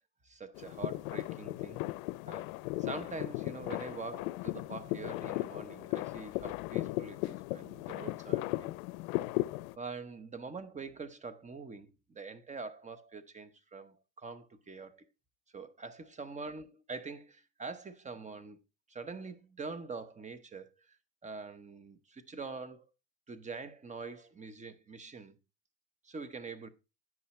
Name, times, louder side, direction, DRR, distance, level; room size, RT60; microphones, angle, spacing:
voice 1, 0.2-1.8 2.3-2.5 2.8-8.7 9.8-15.0 15.5-18.6 18.9-21.0 21.2-22.9 23.3-25.4 26.0-26.7, right 4 dB, 20° right, 0.9 m, -44 dB
sound 1, 0.6-9.7, left 19 dB, 80° left, 0.6 m, -36 dB
9.5 x 5.5 x 4.3 m
supercardioid pair, 120°, 40 cm